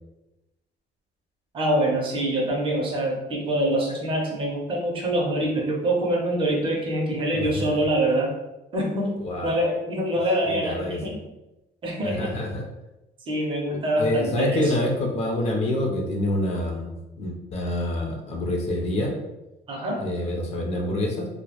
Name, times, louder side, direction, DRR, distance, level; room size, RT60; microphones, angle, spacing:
voice 1, 1.5-8.3 8.7-11.2 11.8-12.5 13.3-14.7 19.7-20.0, right 1 dB, 30° right, -1 dB, 0.5 m, -25 dB
voice 2, 7.3-7.8 9.2-9.6 10.5-11.0 12.0-12.6 13.7-16.9 17.2-19.1 20.0-21.3, left 1 dB, 40° left, 1 dB, 0.4 m, -27 dB
2.1 x 2.0 x 2.8 m, 0.99 s
cardioid pair, 170°, 17 cm